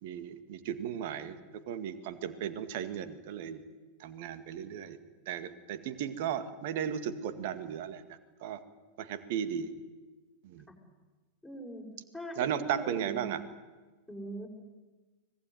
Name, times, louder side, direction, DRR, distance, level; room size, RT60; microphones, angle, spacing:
voice 1, 0.0-3.6 4.0-5.0 5.3-8.0 8.4-8.6 9.0-9.7 10.4-10.7 12.4-13.4, right 9 dB, 50° right, 12 dB, 2.0 m, -35 dB
voice 2, 11.4-11.9 12.1-13.3 14.1-14.5, right 1 dB, ahead, 0 dB, 5.9 m, -41 dB
25.0 x 19.0 x 9.6 m, 1.3 s
figure-of-eight pair, 90°, 0 cm